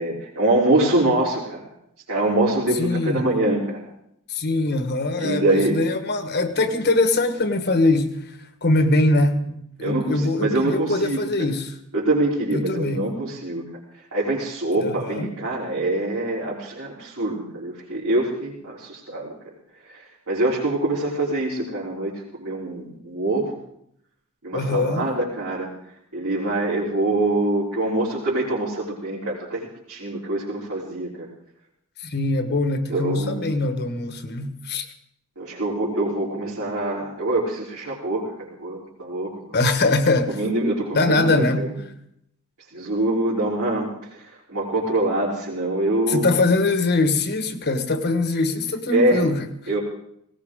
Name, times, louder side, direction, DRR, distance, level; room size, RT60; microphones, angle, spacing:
voice 1, 0.0-1.6 2.1-3.8 5.2-5.8 9.8-11.5 11.9-13.6 14.1-19.3 20.3-22.1 22.4-23.6 24.4-25.7 26.1-31.3 32.9-33.5 35.4-39.5 40.3-41.7 42.7-43.9 44.5-46.3 48.9-49.2 49.7-49.8, right 2 dB, 75° right, -8 dB, 3.7 m, -24 dB
voice 2, 2.7-3.3 4.3-11.8 12.5-13.1 14.8-15.3 24.5-25.1 32.0-34.9 39.5-40.4 40.9-41.7 46.1-49.5, left 2 dB, 50° left, 8 dB, 1.4 m, -22 dB
19.0 x 17.5 x 3.7 m, 0.75 s
head